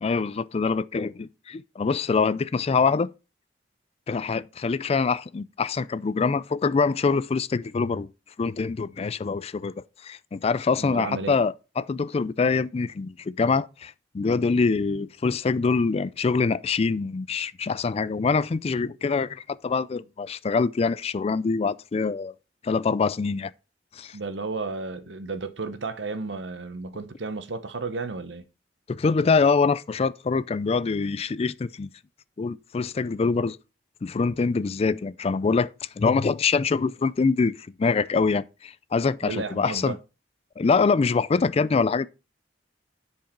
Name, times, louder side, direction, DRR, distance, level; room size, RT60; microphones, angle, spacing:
voice 1, 0.0-3.1 4.1-8.1 8.4-22.3 22.6-23.5 24.0-24.2 28.9-31.9 32.4-33.6 34.0-35.7 36.0-37.5 37.8-40.0 40.6-42.1, left 4 dB, 35° left, 0.4 m, -24 dB
voice 2, 10.8-11.4 24.1-28.4 39.2-40.0, right 3 dB, 80° right, 1.0 m, -33 dB
10.5 x 4.7 x 4.5 m
head